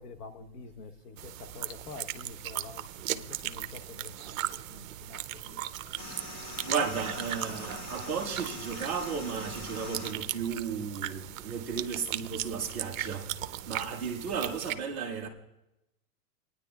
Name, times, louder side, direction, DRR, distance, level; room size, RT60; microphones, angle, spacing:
voice 1, 0.0-5.7, left 4 dB, 80° left, 1.1 m, -47 dB
sound 1, 1.2-14.7, right 13 dB, 60° right, 0.6 m, -38 dB
voice 2, 5.8-13.3 13.7-15.3, right 6 dB, 10° right, 0.3 m, -34 dB
sound 2, 6.0-10.1, left 1 dB, 25° left, 0.9 m, -42 dB
28.0 x 9.7 x 2.3 m
hypercardioid pair, 150°, 46 cm